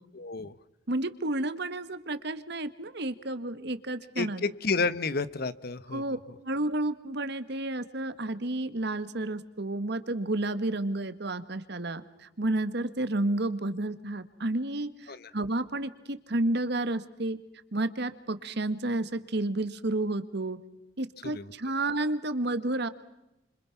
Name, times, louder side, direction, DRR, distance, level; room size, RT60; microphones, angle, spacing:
voice 1, 0.1-0.5 4.2-6.2 15.1-15.3 21.2-21.5, left 4 dB, 55° left, 16 dB, 1.1 m, -31 dB
voice 2, 0.9-4.4 5.9-6.2 6.4-17.4 17.7-20.6 21.0-22.9, right 2 dB, 60° right, 11 dB, 1.5 m, -31 dB
30.0 x 26.5 x 5.9 m, 0.90 s
head